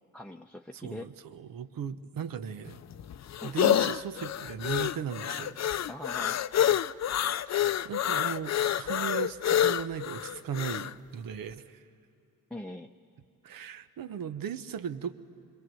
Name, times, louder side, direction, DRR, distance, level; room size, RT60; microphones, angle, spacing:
voice 1, 0.1-1.1 3.4-3.6 5.9-6.4 12.5-12.9, left 1 dB, 5° left, 2 dB, 0.7 m, -42 dB
voice 2, 0.7-2.8 3.4-5.9 7.5-11.8 13.4-15.1, right 8 dB, 80° right, 12 dB, 0.8 m, -37 dB
sound 1, 2.7-10.9, left 10 dB, 50° left, 0.5 m, -28 dB
26.5 x 22.5 x 7.7 m, 2.6 s
cardioid pair, 60°, 34 cm